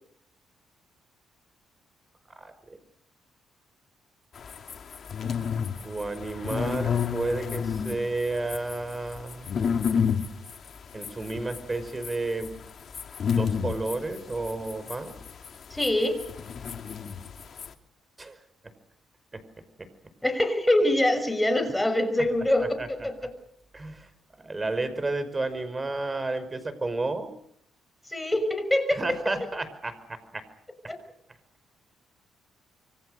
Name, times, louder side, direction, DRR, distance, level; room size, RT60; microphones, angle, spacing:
voice 1, 2.4-2.8 5.8-9.5 10.9-12.6 13.4-15.1 18.2-18.4 19.3-19.4 19.8-19.9 22.8-22.9 23.7-24.1 24.4-27.3 28.9-30.4 30.8-30.9, right 2 dB, 25° right, 12 dB, 5.3 m, -31 dB
sound 1, 4.4-17.7, left 7 dB, 50° left, 2.6 m, -31 dB
voice 2, 15.7-16.2 20.2-23.3 28.1-29.3 30.9-31.0, left 1 dB, 10° left, 9 dB, 5.9 m, -25 dB
26.5 x 24.5 x 6.6 m, 0.69 s
cardioid pair, 90°, 0 cm